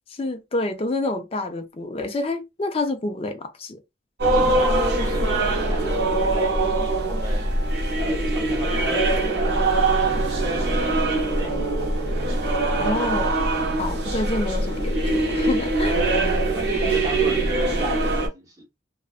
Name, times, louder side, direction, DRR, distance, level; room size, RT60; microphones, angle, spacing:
voice 1, 0.1-3.8 12.8-13.4 13.8-16.0, left 2 dB, 30° left, 0.4 m, -28 dB
sound 1, 4.2-18.3, right 2 dB, 60° right, 0.7 m, -22 dB
voice 2, 4.3-7.5 8.0-11.5 16.3-18.6, equal, 20° right, 0.7 m, -36 dB
2.4 x 2.2 x 2.4 m
head